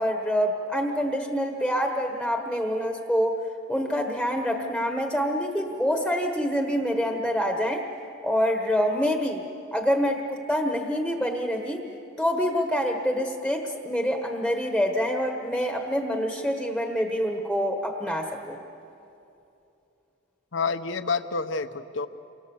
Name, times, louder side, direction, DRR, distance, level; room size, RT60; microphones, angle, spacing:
voice 1, 0.0-3.4 3.7-7.8 8.2-9.4 9.7-11.8 12.2-18.6, equal, ahead, 3 dB, 1.2 m, -26 dB
voice 2, 20.5-22.1, left 4 dB, 65° left, 11 dB, 0.9 m, -28 dB
29.0 x 25.0 x 7.1 m, 2.8 s
head